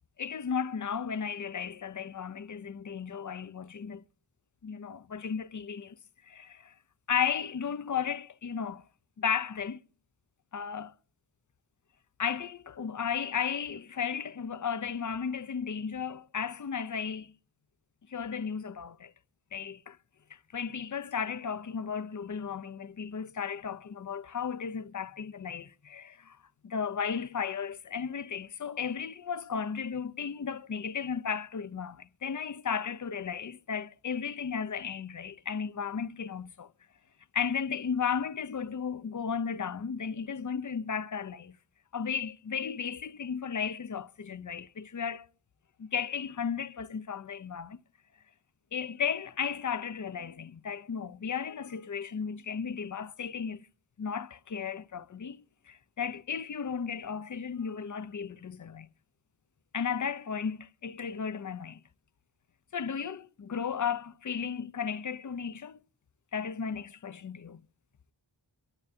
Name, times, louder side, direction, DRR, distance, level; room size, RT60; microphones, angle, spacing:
voice 1, 0.2-4.0 4.6-6.0 6.2-6.7 7.1-8.8 9.2-9.8 10.5-10.9 12.2-17.3 18.1-19.1 19.5-20.0 20.3-26.4 26.6-36.7 37.3-41.6 41.9-45.3 45.8-47.8 48.7-53.7 54.0-58.9 59.7-61.8 62.7-65.8 66.3-67.6, left 7 dB, 45° left, 0.5 m, -34 dB
23.0 x 12.0 x 2.6 m
wide cardioid pair, 40°, 46 cm